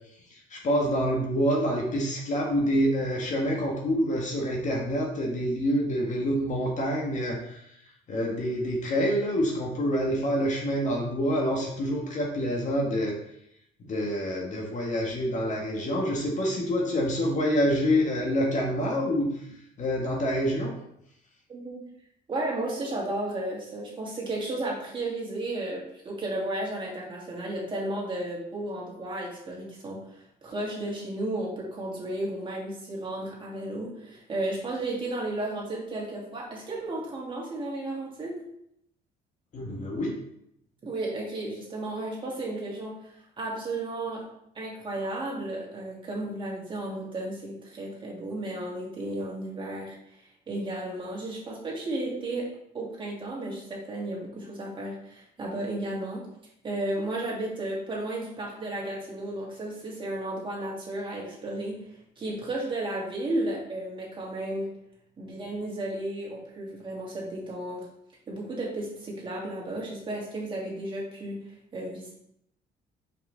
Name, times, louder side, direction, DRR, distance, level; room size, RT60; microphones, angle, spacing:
voice 1, 0.3-7.6 8.1-13.2 13.8-19.5 19.8-20.7 39.5-40.2, equal, 45° left, -1 dB, 1.6 m, -27 dB
voice 2, 21.5-21.8 22.3-38.4 40.8-44.2 44.5-50.2 50.5-52.5 52.7-56.3 56.6-61.8 62.2-64.7 65.2-67.9 68.3-71.4 71.7-72.1, right 1 dB, 30° right, -4 dB, 2.4 m, -33 dB
5.5 x 5.2 x 3.4 m, 0.74 s
cardioid pair, 110°, 17 cm